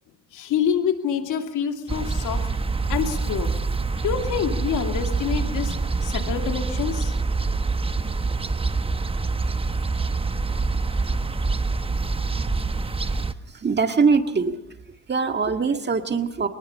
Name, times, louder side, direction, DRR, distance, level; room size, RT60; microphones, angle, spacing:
voice 1, 0.3-2.5 2.9-3.5 4.0-5.7 6.0-7.1, left 8 dB, 80° left, 4 dB, 2.6 m, -26 dB
sound 1, 1.9-13.3, right 3 dB, 20° right, 1.0 m, -26 dB
voice 2, 13.6-14.6 15.1-16.5, right 5 dB, 35° right, 6 dB, 1.8 m, -22 dB
24.0 x 20.0 x 5.5 m, 0.82 s
cardioid pair, 90°, 30 cm